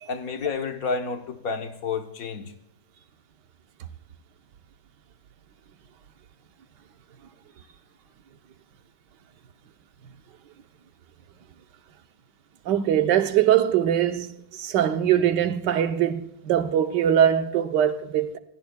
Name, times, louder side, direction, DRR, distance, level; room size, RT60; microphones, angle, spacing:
voice 1, 0.1-2.5, left 5 dB, 55° left, 1.4 m, -30 dB
voice 2, 12.6-18.4, right 10 dB, 80° right, 1.5 m, -22 dB
27.0 x 17.0 x 2.3 m
omnidirectional pair, 1.9 m